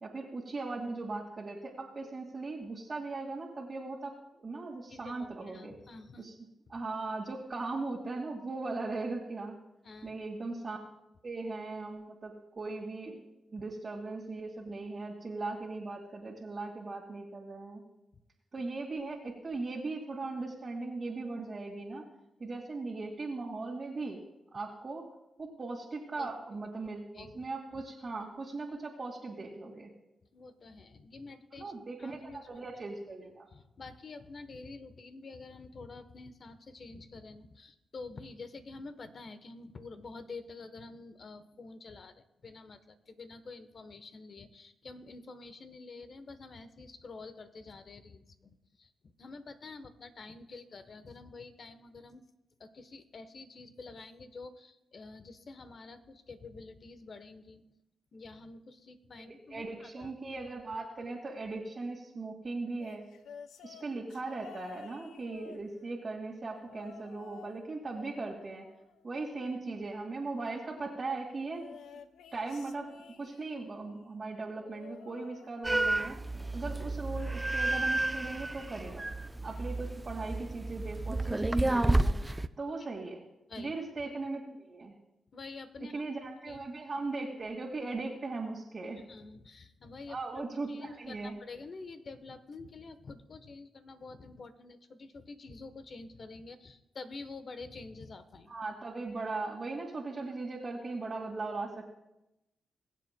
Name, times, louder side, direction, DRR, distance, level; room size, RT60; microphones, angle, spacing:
voice 1, 0.0-5.7 6.2-6.3 6.7-9.6 10.0-10.8 11.2-13.2 13.5-17.8 18.5-22.0 22.4-24.2 24.5-25.1 25.4-29.9 31.6-33.5 59.2-63.1 63.6-68.7 69.0-71.6 72.3-76.2 76.5-79.0 79.4-82.2 82.6-83.2 83.6-84.9 85.8-89.0 90.1-91.4 98.5-101.9, right 3 dB, 45° right, -4 dB, 2.0 m, -39 dB
voice 2, 4.9-6.3 9.8-10.1 18.1-18.2 18.6-18.7 26.2-26.6 27.1-27.8 30.3-31.7 32.0-32.6 33.5-52.2 52.6-57.6 58.1-60.1 83.5-83.7 85.3-86.0 86.4-86.6 89.1-98.6, left 3 dB, 55° left, 11 dB, 1.0 m, -48 dB
sound 1, 62.8-66.1 66.6-67.6 67.9-69.5 71.5-73.7 74.6-76.1 76.4-76.8 77.9-78.0, left 7 dB, 90° left, 0.5 m, -53 dB
sound 2, 75.6-82.5, right 2 dB, 20° right, 0.5 m, -31 dB
22.0 x 7.5 x 2.2 m, 0.90 s
cardioid pair, 55°, 0 cm